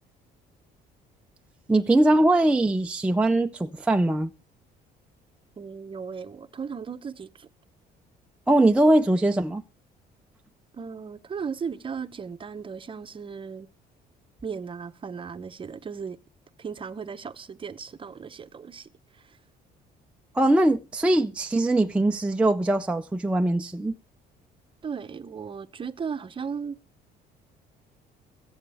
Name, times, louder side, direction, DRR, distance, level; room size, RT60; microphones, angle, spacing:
voice 1, 1.7-4.3 8.5-9.6 20.3-23.9, right 1 dB, 5° right, 0.5 m, -21 dB
voice 2, 5.6-7.5 10.7-13.7 14.4-16.2 16.6-19.4 24.8-26.8, right 6 dB, 30° right, 0.8 m, -36 dB
22.5 x 7.9 x 3.5 m
cardioid pair, 110°, 17 cm